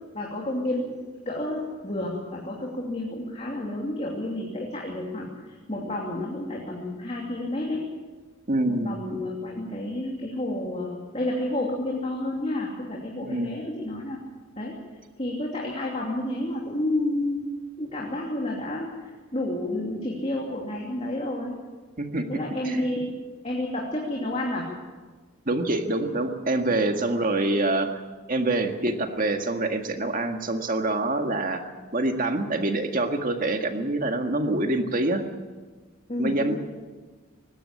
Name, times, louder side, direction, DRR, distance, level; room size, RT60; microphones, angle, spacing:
voice 1, 0.1-1.0 1.2-7.8 8.7-14.2 14.6-14.8 15.2-17.5 17.8-21.5 22.3-23.2 23.4-24.7 26.7-26.9 36.1-36.5, left 1 dB, 30° left, -3 dB, 2.9 m, -30 dB
voice 2, 8.5-9.0 13.2-13.6 22.0-22.8 25.5-28.0 28.3-35.2 36.2-36.5, right 2 dB, 40° right, 5 dB, 1.8 m, -26 dB
20.0 x 16.5 x 8.5 m, 1.4 s
head